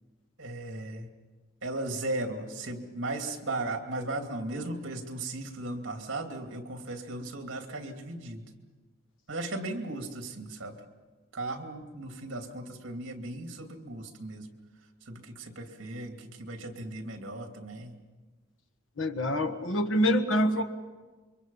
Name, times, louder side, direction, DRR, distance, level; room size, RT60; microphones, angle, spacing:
voice 1, 0.4-1.1 1.6-8.4 9.3-10.8 11.3-14.5 15.1-18.0, right 2 dB, 60° right, 4 dB, 2.5 m, -36 dB
voice 2, 19.0-20.6, equal, 65° left, 8 dB, 1.5 m, -26 dB
27.5 x 24.0 x 5.6 m, 1.3 s
head